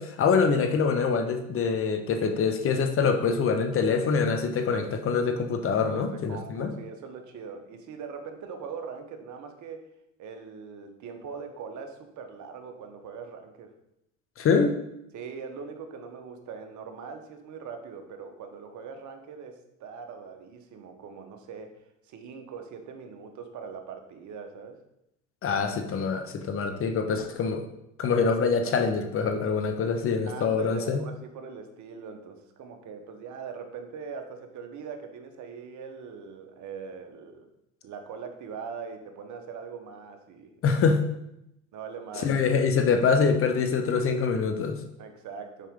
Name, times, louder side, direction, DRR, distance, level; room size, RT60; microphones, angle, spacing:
voice 1, 0.0-6.7 14.4-14.8 25.4-27.7 28.0-31.0 40.6-41.0 42.1-44.8, left 5 dB, 30° left, 6 dB, 0.7 m, -25 dB
voice 2, 5.9-9.9 10.2-13.7 15.1-21.7 22.1-24.8 30.3-37.5 37.8-40.8 41.7-42.3 45.0-45.7, right 6 dB, 45° right, 6 dB, 1.1 m, -41 dB
5.5 x 5.0 x 3.6 m, 0.82 s
hypercardioid pair, 80°, 42 cm